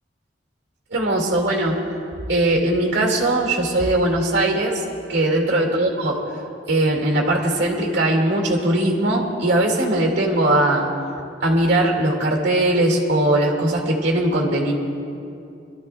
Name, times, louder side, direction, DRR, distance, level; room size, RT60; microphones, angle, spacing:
voice 1, 0.9-1.8 2.3-4.8 5.1-6.1 6.7-10.9 11.4-14.7, right 1 dB, 65° right, 0 dB, 2.2 m, -20 dB
26.0 x 13.5 x 2.3 m, 2.6 s
head